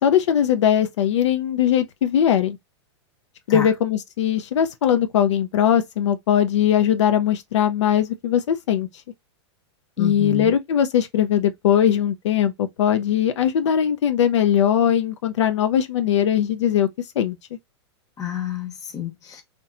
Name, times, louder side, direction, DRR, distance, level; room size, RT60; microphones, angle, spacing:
voice 1, 0.0-2.6 3.5-8.9 10.0-16.9 17.2-17.4, left 9 dB, 80° left, 0.4 m, -20 dB
voice 2, 10.0-10.5 18.2-19.4, left 10 dB, 25° left, 0.9 m, -29 dB
2.8 x 2.2 x 2.4 m
hypercardioid pair, 130°, 15 cm